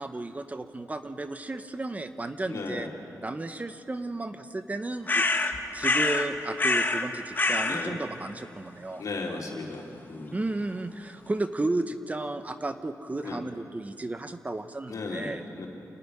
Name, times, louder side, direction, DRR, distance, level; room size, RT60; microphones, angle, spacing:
voice 1, 0.0-2.9 3.2-5.2 5.7-9.0 10.3-15.4, right 2 dB, 25° right, 9 dB, 0.8 m, -33 dB
voice 2, 2.4-2.9 7.7-8.0 9.0-10.4 13.2-13.4 14.9-15.7, left 3 dB, 70° left, 0 dB, 3.2 m, -36 dB
sound 1, 5.1-6.3 6.6-7.1 7.4-7.9, left 3 dB, 30° left, 1.2 m, -25 dB
28.0 x 11.0 x 9.7 m, 2.7 s
wide cardioid pair, 110°, 6 cm